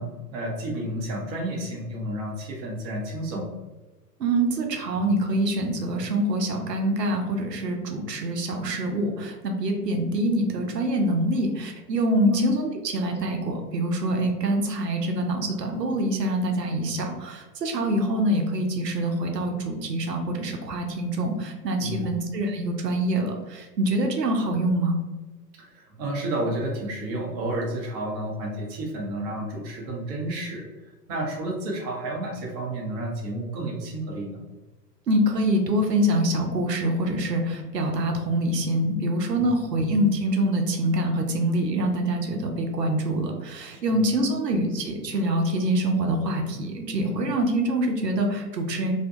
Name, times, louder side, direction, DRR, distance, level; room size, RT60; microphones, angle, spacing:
voice 1, 0.0-3.5 12.2-12.5 21.8-22.0 25.5-34.4 43.7-43.9 44.2-44.3, right 1 dB, 25° right, -2 dB, 0.5 m, -31 dB
voice 2, 4.2-12.7 12.9-25.0 35.1-48.9, right 1 dB, 85° right, 3 dB, 0.6 m, -25 dB
2.6 x 2.2 x 2.6 m, 1.2 s
figure-of-eight pair, 100°, 48 cm